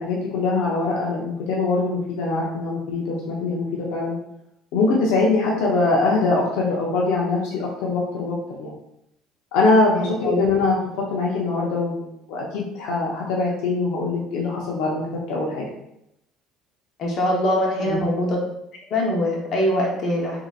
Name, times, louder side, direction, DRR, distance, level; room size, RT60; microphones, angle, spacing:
voice 1, 0.0-4.2 4.7-8.7 9.5-15.6 17.8-18.0, left 3 dB, 85° left, -3 dB, 0.7 m, -23 dB
voice 2, 10.0-10.4 17.0-18.4 18.9-20.4, left 1 dB, 50° left, -2 dB, 1.0 m, -23 dB
3.9 x 2.8 x 2.4 m, 0.80 s
cardioid pair, 115°, 0 cm